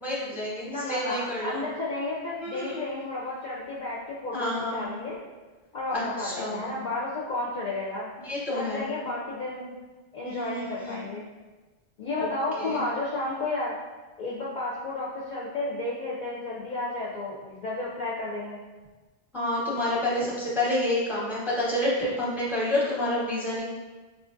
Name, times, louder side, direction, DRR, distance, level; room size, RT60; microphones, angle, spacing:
voice 1, 0.0-1.6 2.4-2.8 4.3-4.9 5.9-6.7 8.2-8.9 10.2-11.0 12.2-12.3 12.6-12.8 19.3-23.6, left 1 dB, ahead, -6 dB, 0.7 m, -29 dB
voice 2, 0.7-5.2 5.7-8.1 8.5-9.7 10.1-11.3 12.0-13.7 14.2-18.6, left 2 dB, 55° left, -5 dB, 0.6 m, -32 dB
4.8 x 2.4 x 2.5 m, 1.3 s
omnidirectional pair, 1.1 m